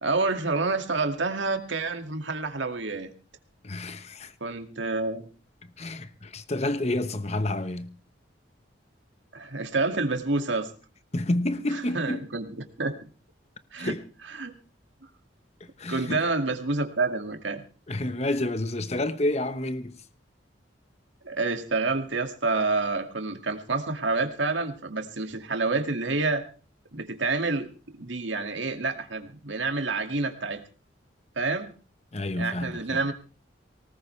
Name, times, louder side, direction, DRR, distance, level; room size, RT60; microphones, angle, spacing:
voice 1, 0.0-3.1 4.4-5.3 9.3-10.7 11.7-13.1 13.7-14.0 14.4-14.5 15.9-17.6 21.2-26.5 26.9-30.6 31.4-31.7 32.4-33.1, right 3 dB, 75° right, 2.2 m, -28 dB
voice 2, 3.6-4.3 5.8-7.9 11.1-12.2 13.8-14.0 15.6-16.2 17.9-20.0 32.1-33.0, left 1 dB, 35° left, 1.1 m, -29 dB
19.5 x 19.0 x 3.3 m
head